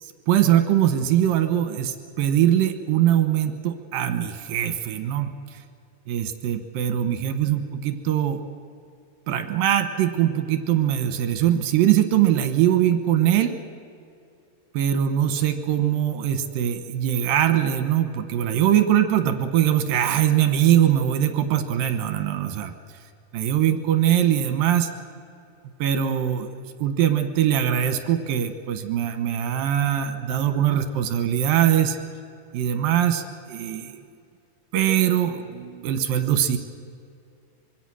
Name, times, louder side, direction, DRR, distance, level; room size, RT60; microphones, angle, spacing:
voice 1, 0.0-5.3 6.1-8.4 9.3-13.6 14.7-22.7 23.3-24.9 25.8-26.5 26.8-32.0 32.5-33.2 33.5-34.0 34.7-36.6, right 11 dB, 70° right, 8 dB, 2.8 m, -22 dB
25.0 x 23.0 x 6.3 m, 2.5 s
omnidirectional pair, 4.5 m